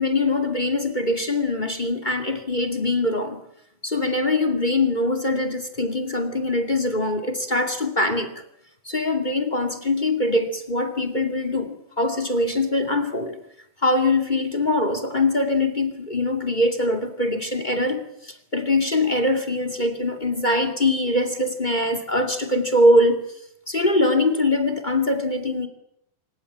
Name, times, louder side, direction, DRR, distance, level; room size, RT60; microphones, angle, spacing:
voice 1, 0.0-3.4 3.8-8.3 8.8-13.4 13.8-23.2 23.7-25.7, left 2 dB, 15° left, 9 dB, 1.8 m, -22 dB
27.0 x 15.5 x 8.8 m, 0.75 s
omnidirectional pair, 4.2 m